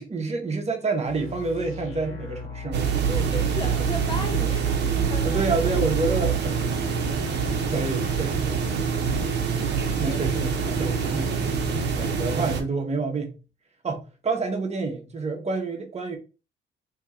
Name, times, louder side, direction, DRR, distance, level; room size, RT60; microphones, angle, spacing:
voice 1, 0.0-2.9 5.2-7.0 7.3-8.6 10.0-13.4 13.8-16.2, right 3 dB, 35° right, 1.0 m, -29 dB
sound 1, 1.0-12.3, left 5 dB, 85° left, 1.2 m, -38 dB
Apartment small quiet bathroom, 2.7-12.6, right 7 dB, 60° right, 0.8 m, -25 dB
voice 2, 3.1-5.4 8.1-8.2 8.9-9.2 10.0-10.2, left 3 dB, 25° left, 0.4 m, -36 dB
2.9 x 2.8 x 3.6 m
cardioid pair, 90°, 20 cm